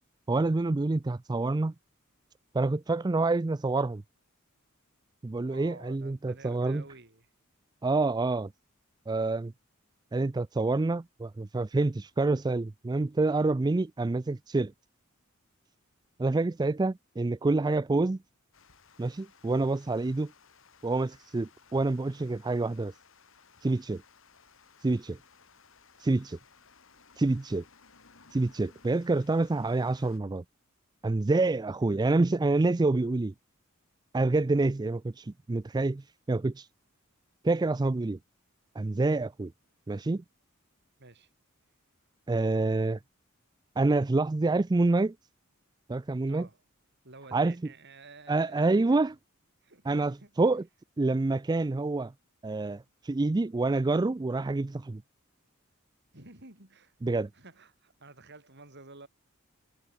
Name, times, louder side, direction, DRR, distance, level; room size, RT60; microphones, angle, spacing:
voice 1, 0.3-1.7 2.5-4.0 5.2-6.8 7.8-8.5 9.1-9.5 10.1-14.7 16.2-18.2 19.0-20.3 20.8-22.9 23.6-24.0 24.8-25.2 26.0-26.4 27.2-27.6 28.3-30.4 31.0-33.3 34.1-36.7 37.4-38.2 38.8-39.5 39.9-40.2 42.3-43.0 43.8-45.1 45.9-46.5 47.3-47.5 48.3-49.1 49.9-50.6 51.0-52.1 52.4-55.0 57.0-57.3, right 2 dB, 20° right, 0.4 m, -27 dB
voice 2, 5.5-7.3 41.0-41.3 46.2-46.6 47.0-49.1 49.6-50.3 56.1-59.1, right 3 dB, 55° right, 6.1 m, -52 dB
Water, 18.5-30.2, left 5 dB, 65° left, 3.6 m, -60 dB
head